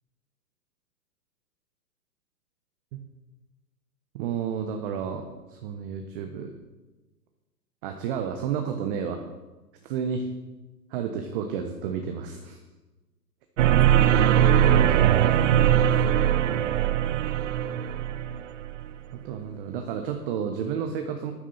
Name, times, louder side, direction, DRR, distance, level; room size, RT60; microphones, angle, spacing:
voice 1, 4.1-6.5 7.8-9.2 9.8-10.3 10.9-12.6 14.5-15.9 19.1-21.3, right 7 dB, 35° right, 5 dB, 1.1 m, -31 dB
sound 1, 13.6-18.9, right 10 dB, 50° right, 0.6 m, -21 dB
14.0 x 11.5 x 4.3 m, 1.2 s
figure-of-eight pair, 125°, 49 cm